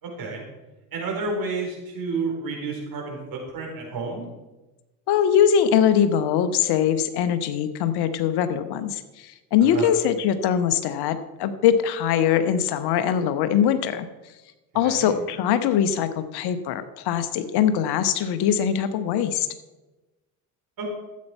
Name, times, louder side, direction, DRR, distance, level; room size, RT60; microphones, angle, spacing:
voice 1, 0.0-0.4 0.9-4.3 9.6-9.9 14.7-15.1 20.8-20.9, right 3 dB, 50° right, 0 dB, 4.4 m, -30 dB
voice 2, 5.1-14.1 14.7-19.5, left 8 dB, 60° left, 11 dB, 1.1 m, -22 dB
13.0 x 8.5 x 4.5 m, 1.1 s
hypercardioid pair, 60°, 45 cm